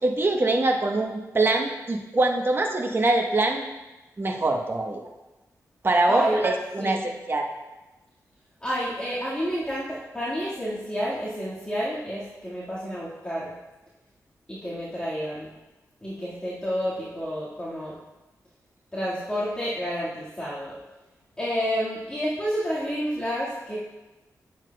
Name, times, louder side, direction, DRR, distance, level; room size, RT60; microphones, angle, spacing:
voice 1, 0.0-3.6 4.2-5.0 5.8-7.5, right 2 dB, 35° right, 2 dB, 1.0 m, -24 dB
voice 2, 6.1-6.4 6.8-7.0 8.6-13.5 14.5-15.5 16.0-18.0 18.9-20.7 21.4-23.8, equal, 15° left, -10 dB, 1.8 m, -29 dB
9.3 x 7.2 x 2.3 m, 1.1 s
cardioid pair, 70°, 6 cm